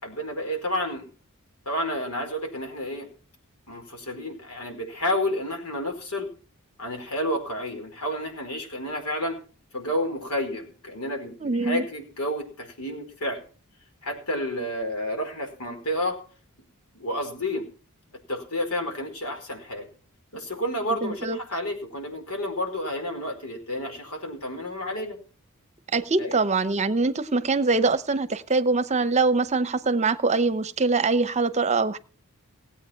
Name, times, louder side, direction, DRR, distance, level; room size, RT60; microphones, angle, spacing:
voice 1, 0.0-1.1 1.6-3.1 3.7-6.3 6.8-9.4 9.7-13.5 14.0-16.2 16.9-17.7 18.3-19.9 20.3-25.2 26.2-26.3, left 1 dB, 85° left, 4.7 m, -30 dB
voice 2, 11.4-11.9 21.0-21.4 25.9-32.0, right 3 dB, 30° right, 0.8 m, -23 dB
18.0 x 8.4 x 5.8 m
head